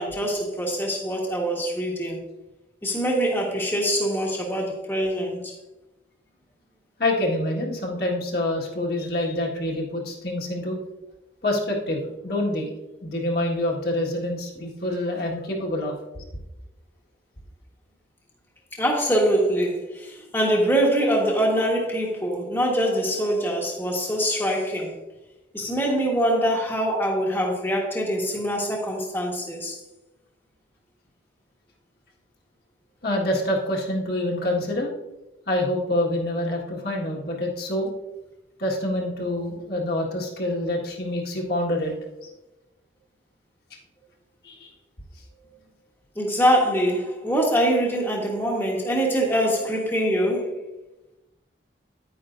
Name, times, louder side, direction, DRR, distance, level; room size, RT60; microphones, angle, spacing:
voice 1, 0.0-2.2 2.8-5.5 18.8-24.9 25.5-29.8 46.1-50.5, equal, 10° left, -2 dB, 1.4 m, -24 dB
voice 2, 7.0-10.8 11.4-12.7 13.0-15.9 33.0-34.9 35.5-37.9 38.6-41.9 42.2-42.3 44.4-44.7, left 1 dB, 55° left, -1 dB, 1.7 m, -26 dB
10.0 x 9.3 x 2.6 m, 0.98 s
head